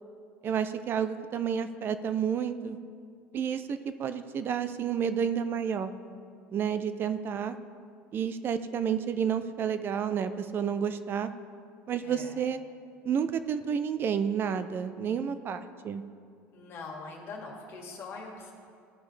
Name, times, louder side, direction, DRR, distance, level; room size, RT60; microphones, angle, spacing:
voice 1, 0.4-2.8 3.3-5.9 6.5-7.6 8.1-11.3 11.9-12.6 13.0-16.0, right 7 dB, 40° right, 11 dB, 0.5 m, -30 dB
voice 2, 12.0-12.4 16.5-18.5, left 3 dB, 45° left, 0 dB, 1.9 m, -42 dB
14.5 x 5.1 x 3.3 m, 2.3 s
supercardioid pair, 115°, 6 cm